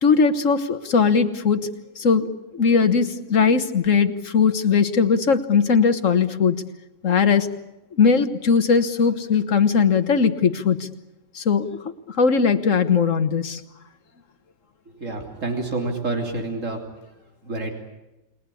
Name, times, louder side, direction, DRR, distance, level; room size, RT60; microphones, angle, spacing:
voice 1, 0.0-1.7 2.0-6.6 7.0-7.5 7.9-10.9 11.4-11.7 12.1-13.6, left 5 dB, 80° left, 9 dB, 1.8 m, -19 dB
voice 2, 15.0-16.8 17.5-17.7, right 3 dB, 75° right, 3 dB, 3.7 m, -28 dB
29.5 x 20.5 x 8.5 m, 0.97 s
omnidirectional pair, 1.3 m